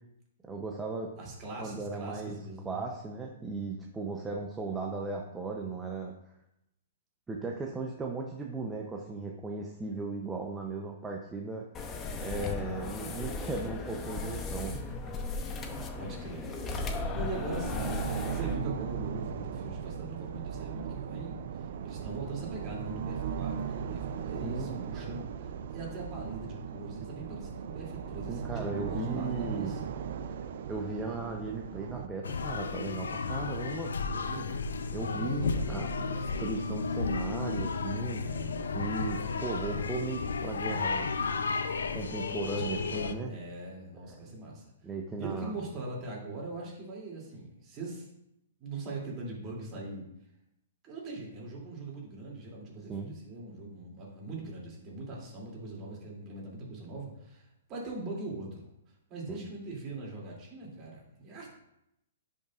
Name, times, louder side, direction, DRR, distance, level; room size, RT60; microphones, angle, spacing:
voice 1, 0.4-1.1 1.6-2.3 2.6-6.1 7.3-14.7 24.4-24.8 28.3-29.7 30.7-34.0 34.9-35.9 36.2-38.3 38.7-41.1 41.9-43.3 44.0-44.2 44.8-45.6 52.9-53.1 59.3-59.4, right 3 dB, 10° right, 0 dB, 0.7 m, -37 dB
voice 2, 1.2-2.8 4.2-4.4 14.6-15.3 15.6-16.5 16.9-29.8 34.1-34.6 34.9-36.1 38.2-38.8 42.5-44.7 45.2-48.1 48.6-50.1 50.8-58.7 59.1-61.5, right 2 dB, 30° right, -3 dB, 2.8 m, -41 dB
sound 1, 11.7-18.5, left 3 dB, 20° left, 0.8 m, -36 dB
sound 2, 16.4-32.1, right 7 dB, 60° right, 0.5 m, -38 dB
sound 3, 32.2-43.1, left 4 dB, 85° left, 0.6 m, -33 dB
10.5 x 5.4 x 2.5 m, 0.82 s
hypercardioid pair, 135°, 0 cm